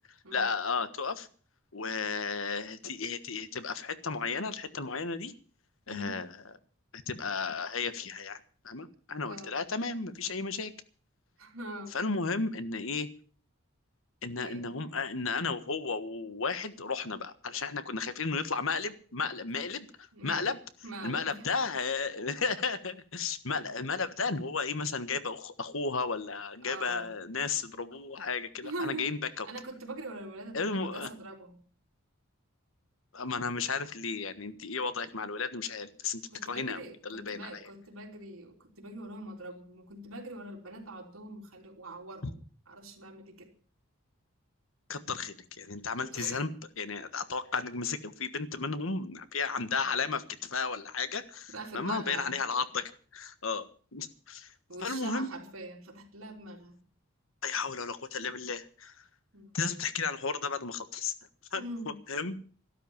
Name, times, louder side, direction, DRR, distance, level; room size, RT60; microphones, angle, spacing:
voice 1, 0.3-1.3 1.7-5.3 5.9-6.3 6.9-8.4 8.6-10.7 11.9-13.1 14.2-20.6 21.0-29.5 30.5-31.1 33.1-37.7 44.9-46.5 46.8-53.7 53.9-54.5 54.8-55.3 57.4-58.9 59.5-61.1 61.5-61.6 62.1-62.4, left 4 dB, 75° left, 12 dB, 1.4 m, -34 dB
voice 2, 5.9-6.2 9.2-9.6 11.4-12.0 14.3-14.7 20.1-20.5 20.8-21.5 23.6-23.8 26.6-27.2 28.6-29.1 29.4-31.6 36.3-42.4 42.7-43.5 46.0-46.5 51.5-52.3 54.7-56.8 59.3-59.6 61.5-62.0, right 2 dB, 80° right, 0 dB, 3.4 m, -43 dB
12.5 x 12.5 x 7.1 m, 0.42 s
head